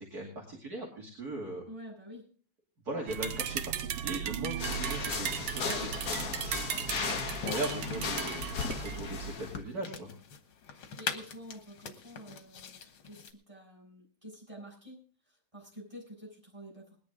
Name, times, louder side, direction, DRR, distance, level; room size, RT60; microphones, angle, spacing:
voice 1, 0.1-1.6 2.8-10.1, right 2 dB, 45° right, -3 dB, 2.9 m, -39 dB
voice 2, 1.7-2.2 10.7-17.0, equal, 15° right, -3 dB, 6.7 m, -49 dB
sound 1, 3.1-9.3, right 9 dB, 75° right, 1.6 m, -36 dB
sound 2, 4.6-9.6, left 5 dB, 50° left, 1.5 m, -36 dB
sound 3, 5.0-13.3, left 6 dB, 90° left, 2.2 m, -45 dB
20.0 x 10.5 x 3.7 m, 0.44 s
omnidirectional pair, 2.2 m